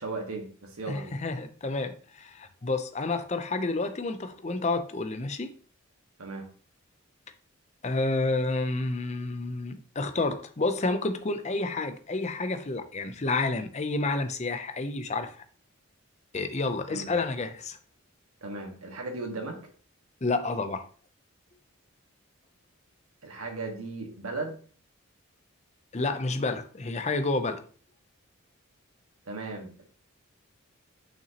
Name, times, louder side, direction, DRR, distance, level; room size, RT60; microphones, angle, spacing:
voice 1, 0.0-1.1 6.2-6.5 16.9-17.2 18.4-19.6 23.2-24.6 29.2-29.8, right 3 dB, 85° right, 1.7 m, -36 dB
voice 2, 0.9-5.5 7.8-15.3 16.3-17.8 20.2-20.9 25.9-27.6, left 3 dB, 30° left, 0.6 m, -30 dB
6.7 x 6.0 x 2.9 m
head